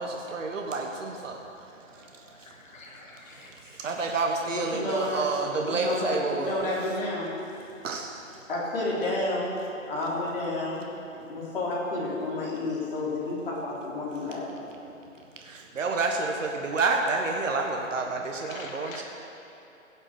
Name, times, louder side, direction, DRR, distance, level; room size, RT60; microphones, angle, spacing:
voice 1, 0.0-2.5 3.3-6.9 7.8-8.4 15.4-19.0, right 3 dB, 65° right, 2 dB, 1.4 m, -30 dB
voice 2, 2.3-3.5 18.4-19.0, left 3 dB, 70° left, 1 dB, 2.4 m, -46 dB
voice 3, 4.5-5.2 5.6-7.3 8.5-9.6 9.9-10.9 11.3-14.6, left 2 dB, 40° left, -6 dB, 3.7 m, -30 dB
16.5 x 7.4 x 6.7 m, 2.8 s
hypercardioid pair, 175°, 41 cm